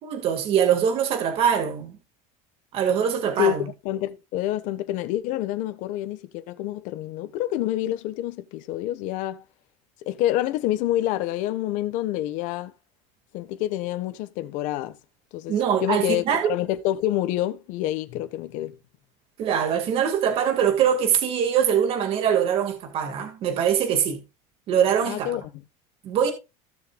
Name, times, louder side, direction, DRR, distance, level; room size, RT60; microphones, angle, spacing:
voice 1, 0.0-1.9 2.7-3.7 15.5-16.5 19.4-24.2 24.7-25.4 26.0-26.3, right 8 dB, 35° right, 2.1 m, -23 dB
voice 2, 3.8-9.4 10.0-12.7 13.3-15.0 15.3-18.8 25.0-25.6, left 14 dB, 50° left, 1.2 m, -27 dB
16.0 x 6.7 x 2.4 m
cardioid pair, 175°, 17 cm